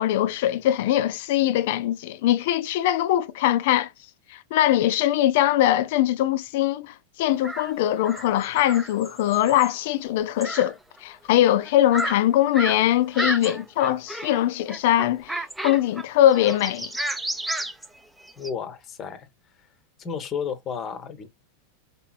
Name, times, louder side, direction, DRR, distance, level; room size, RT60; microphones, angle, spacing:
voice 1, 0.0-3.9 4.3-16.9, left 12 dB, 60° left, 0.5 m, -22 dB
sound 1, 7.4-7.7 8.0-9.8 10.4-10.7 11.0-11.1 11.7-12.2 12.5-12.8 13.1-14.4 14.7-16.0 16.3-18.5, right 1 dB, 5° right, 0.6 m, -31 dB
voice 2, 18.4-19.3 20.0-21.3, left 7 dB, 35° left, 0.8 m, -32 dB
3.4 x 2.9 x 2.3 m
hypercardioid pair, 95°, 0 cm